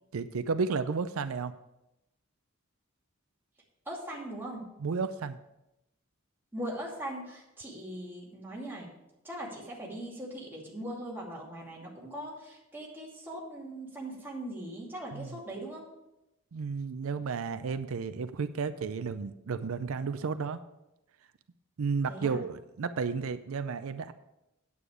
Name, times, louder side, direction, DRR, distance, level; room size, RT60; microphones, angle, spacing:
voice 1, 0.1-1.5 4.8-5.4 15.1-15.4 16.5-20.6 21.8-24.1, right 5 dB, 85° right, 11 dB, 0.5 m, -32 dB
voice 2, 3.9-4.7 6.5-8.9 9.2-15.8 22.1-22.4, right 1 dB, 10° right, -4 dB, 2.4 m, -40 dB
9.2 x 8.4 x 4.9 m, 0.90 s
head